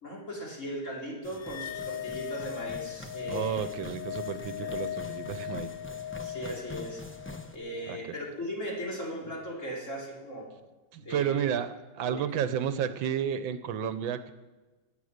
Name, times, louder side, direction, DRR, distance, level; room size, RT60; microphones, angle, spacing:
voice 1, 0.0-3.6 4.6-4.7 6.2-7.0 7.5-10.5 11.0-11.5 12.0-12.4, equal, 35° left, -3 dB, 3.9 m, -38 dB
sound 1, 1.2-7.6, left 2 dB, 15° left, 0.4 m, -45 dB
sound 2, 1.4-7.9, left 11 dB, 85° left, 0.7 m, -39 dB
voice 2, 3.3-5.7 7.9-8.0 10.9-14.3, right 8 dB, 80° right, 11 dB, 1.5 m, -31 dB
18.5 x 9.4 x 6.6 m, 1.2 s
omnidirectional pair, 2.1 m